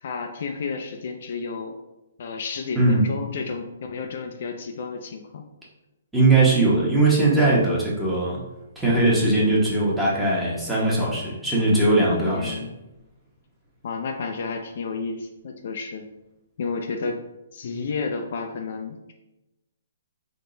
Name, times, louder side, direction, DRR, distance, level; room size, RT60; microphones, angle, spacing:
voice 1, 0.0-1.8 2.2-5.4 12.2-12.7 13.8-16.1 16.6-17.2 17.5-19.1, left 4 dB, 55° left, 4 dB, 0.5 m, -31 dB
voice 2, 6.1-8.4 8.8-12.6, right 2 dB, 5° right, -7 dB, 1.1 m, -20 dB
3.7 x 2.9 x 3.9 m, 0.98 s
hypercardioid pair, 155°, 0 cm